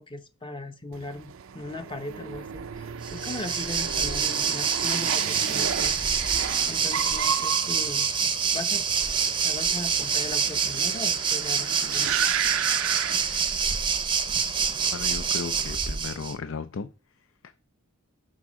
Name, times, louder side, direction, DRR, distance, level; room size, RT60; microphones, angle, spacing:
voice 1, 0.0-5.9 6.7-8.8 9.3-12.4, left 2 dB, 25° left, 0.7 m, -38 dB
sound 1, 0.9-14.0 14.3-14.9, right 8 dB, 65° right, 0.5 m, -34 dB
Waves surf, 3.0-16.3, right 6 dB, 20° right, 0.6 m, -26 dB
voice 2, 14.9-16.9 17.4-17.6, left 5 dB, 65° left, 0.5 m, -35 dB
10.5 x 3.6 x 6.2 m
head